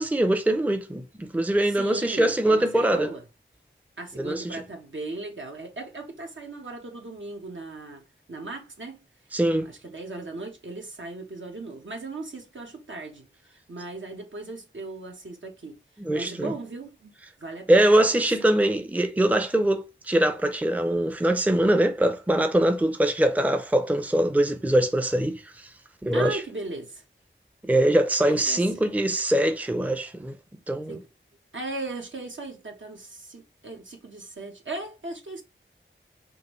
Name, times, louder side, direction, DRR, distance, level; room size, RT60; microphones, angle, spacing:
voice 1, 0.0-3.1 4.2-4.6 9.3-9.7 16.0-16.6 17.7-25.7 26.0-26.4 27.6-30.4 30.7-31.0, right 1 dB, 5° right, 0.5 m, -23 dB
voice 2, 1.7-3.2 4.0-8.0 8.3-9.0 9.5-15.8 16.1-17.1 17.4-18.5 26.1-27.0 28.2-28.9 30.9-31.1 31.5-35.4, right 2 dB, 70° right, 1.2 m, -37 dB
5.3 x 2.6 x 3.1 m
wide cardioid pair, 55°, 21 cm